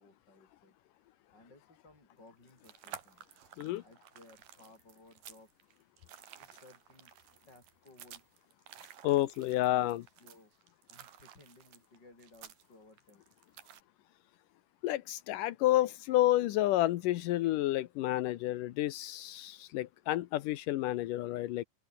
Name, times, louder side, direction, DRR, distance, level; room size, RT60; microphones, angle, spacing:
voice 1, 0.0-3.2 3.8-5.6 6.4-7.1 7.5-8.3 9.0-9.3 9.7-10.5 10.9-13.2, left 2 dB, 30° left, 7.2 m, -59 dB
sound 1, 2.3-13.8, right 10 dB, 85° right, 3.7 m, -53 dB
voice 2, 9.0-10.0 14.8-21.6, left 15 dB, 80° left, 2.4 m, -30 dB
open air
omnidirectional pair, 3.9 m